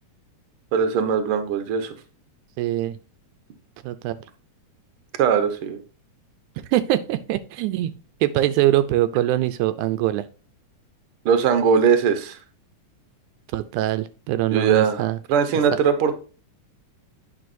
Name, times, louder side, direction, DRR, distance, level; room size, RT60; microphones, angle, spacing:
voice 1, 0.7-1.9 5.2-5.8 11.2-12.4 14.5-15.0 15.3-16.1, right 6 dB, 65° right, 9 dB, 1.4 m, -20 dB
voice 2, 2.6-2.9 3.8-4.2 6.7-7.9 8.2-10.2 13.5-15.2, right 14 dB, 80° right, 12 dB, 1.9 m, -23 dB
9.3 x 6.1 x 2.6 m, 0.36 s
omnidirectional pair, 3.6 m